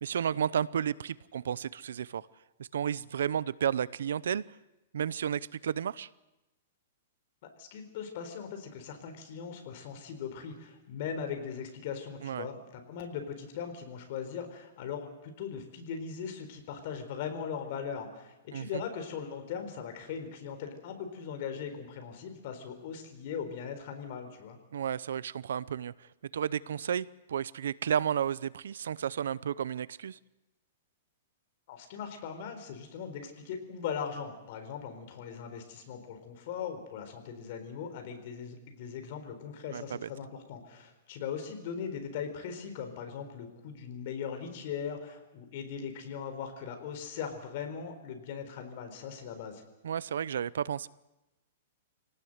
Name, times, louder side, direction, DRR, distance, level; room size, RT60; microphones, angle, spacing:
voice 1, 0.0-2.3 2.7-4.4 4.9-6.1 12.2-12.5 18.5-18.8 24.7-30.2 39.7-40.1 49.8-50.9, right 8 dB, 85° right, 20 dB, 0.7 m, -32 dB
voice 2, 7.4-24.6 31.7-49.6, left 7 dB, 45° left, 6 dB, 4.3 m, -39 dB
26.5 x 18.5 x 8.0 m, 1.0 s
hypercardioid pair, 165°, 0 cm